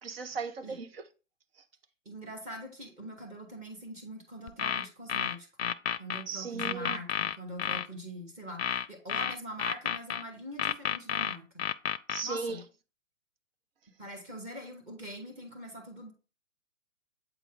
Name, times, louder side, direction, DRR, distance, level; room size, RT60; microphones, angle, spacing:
voice 1, 0.0-1.1 6.3-7.0 12.1-12.6, right 5 dB, 50° right, 1.0 m, -37 dB
voice 2, 2.1-5.7 6.0-11.7 12.2-12.6 14.0-16.1, equal, 20° right, 2.1 m, -43 dB
sound 1, 4.5-6.2 6.6-7.9 8.6-10.2 10.6-12.2, left 9 dB, 55° left, 0.5 m, -31 dB
8.2 x 4.0 x 3.9 m
figure-of-eight pair, 130°, 39 cm